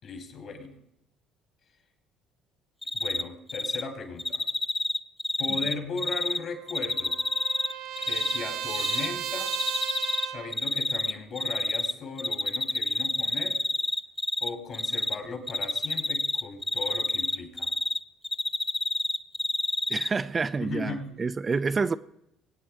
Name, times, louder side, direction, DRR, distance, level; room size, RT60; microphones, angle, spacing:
voice 1, 0.0-0.7 2.9-4.4 5.4-7.2 8.0-9.5 10.3-13.6 14.4-17.7 20.6-21.2, left 4 dB, 55° left, 4.0 m, -37 dB
Cricket, 2.8-3.2 3.5-3.8 4.2-6.4 6.7-8.4 8.7-9.1 9.5-10.3 10.5-11.9 12.2-14.5 14.7-15.1 15.5-18.0 18.2-20.1, left 2 dB, 15° left, 0.8 m, -28 dB
Trumpet, 6.2-10.6, right 10 dB, 75° right, 1.3 m, -35 dB
voice 2, 19.9-21.9, right 4 dB, 30° right, 0.5 m, -28 dB
23.5 x 8.9 x 4.7 m
hypercardioid pair, 65°, 0 cm